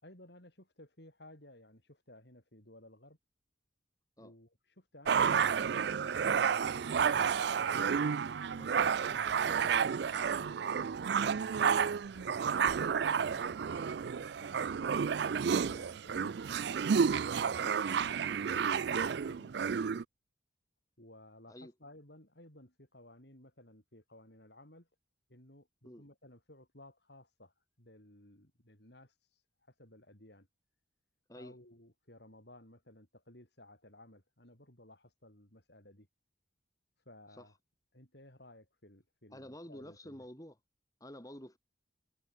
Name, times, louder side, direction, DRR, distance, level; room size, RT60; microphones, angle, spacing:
voice 1, 0.0-3.2 4.2-7.7 8.5-14.7 15.1-16.4 17.2-20.0 21.0-24.9 25.3-29.4 29.7-30.5 31.3-36.1 37.1-37.5 37.9-40.3, left 1 dB, 55° left, 5.9 m, -57 dB
sound 1, 5.1-20.0, right 7 dB, 55° right, 0.4 m, -31 dB
voice 2, 15.6-15.9 17.4-17.7 21.5-21.7 25.8-26.1 31.3-31.6 37.4-37.5 39.3-40.6 41.0-41.6, equal, 15° left, 4.2 m, -50 dB
head